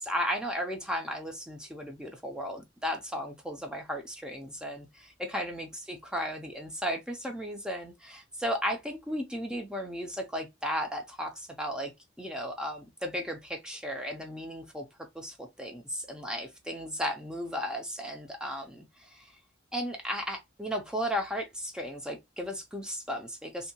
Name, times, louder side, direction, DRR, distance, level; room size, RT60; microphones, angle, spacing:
voice 1, 0.0-11.9 12.2-14.9 15.1-19.3 19.7-23.7, equal, 5° right, 0.4 m, -35 dB
2.6 x 2.2 x 2.7 m
head